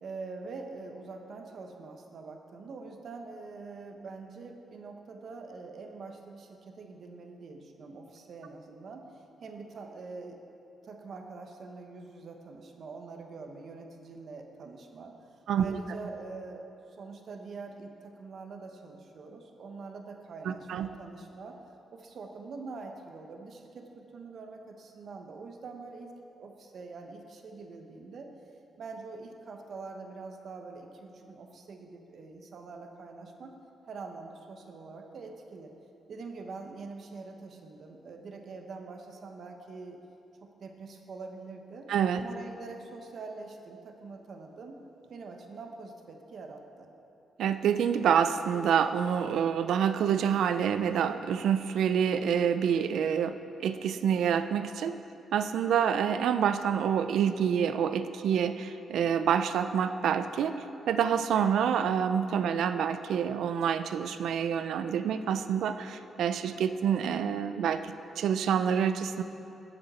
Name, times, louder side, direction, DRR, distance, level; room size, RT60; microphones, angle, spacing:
voice 1, 0.0-10.4 10.8-16.6 16.9-21.6 21.9-28.3 28.8-33.6 33.9-35.7 36.1-40.0 40.6-41.9 42.1-44.8 45.1-46.9, right 4 dB, 60° right, 4 dB, 1.1 m, -44 dB
voice 2, 15.5-15.8 20.5-20.9 41.9-42.2 47.4-55.0 55.3-69.2, right 8 dB, 85° right, 10 dB, 0.5 m, -27 dB
16.5 x 6.7 x 4.3 m, 2.8 s
cardioid pair, 110°, 0 cm